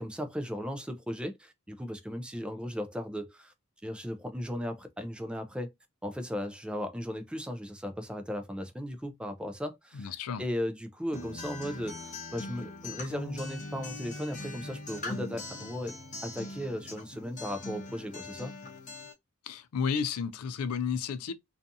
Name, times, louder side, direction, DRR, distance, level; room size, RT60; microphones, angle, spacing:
voice 1, 0.0-3.5 3.8-5.7 6.0-10.1 10.4-15.9 16.2-18.5, equal, 5° right, 0.3 m, -36 dB
voice 2, 9.9-10.5 19.4-21.3, left 6 dB, 85° left, 0.4 m, -32 dB
Acoustic guitar, 11.1-19.1, left 2 dB, 35° left, 0.8 m, -41 dB
2.5 x 2.3 x 2.6 m
head